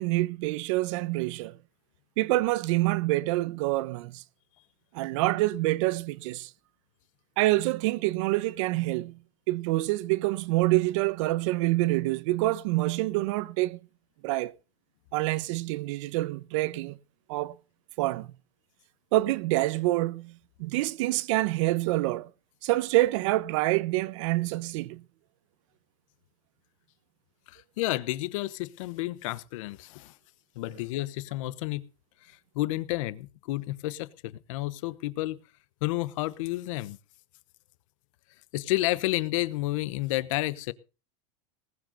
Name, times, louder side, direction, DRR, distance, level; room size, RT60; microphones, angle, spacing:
voice 1, 0.0-1.6 2.2-4.2 4.9-6.5 7.4-9.2 9.5-13.8 14.2-14.5 15.1-17.0 17.3-17.5 18.0-18.3 19.1-22.3 22.6-25.0, right 18 dB, 60° right, 0.9 m, -26 dB
voice 2, 27.5-30.1 30.5-31.8 32.3-35.4 35.8-37.0 38.5-40.7, left 18 dB, 65° left, 1.1 m, -31 dB
19.5 x 6.5 x 6.6 m
supercardioid pair, 160°, 18 cm